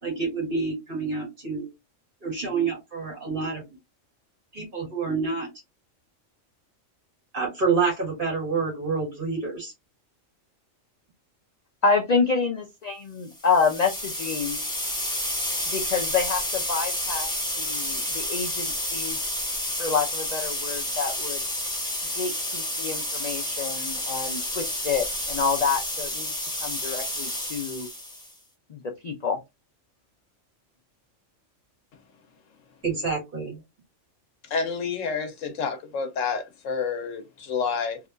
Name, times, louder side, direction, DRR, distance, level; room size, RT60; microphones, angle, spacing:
voice 1, 0.0-1.7 2.2-3.7 4.5-5.5 7.3-9.7 32.8-33.6, right 4 dB, 45° right, 1.8 m, -28 dB
voice 2, 11.8-14.6 15.7-17.3 17.6-19.2 19.8-21.4 22.2-26.3 26.6-27.9 28.7-29.4, left 5 dB, 50° left, 0.5 m, -27 dB
sound 1, 13.4-28.3, left 1 dB, 5° left, 1.1 m, -30 dB
voice 3, 34.4-38.0, left 5 dB, 80° left, 1.2 m, -29 dB
3.5 x 2.8 x 2.5 m
omnidirectional pair, 1.3 m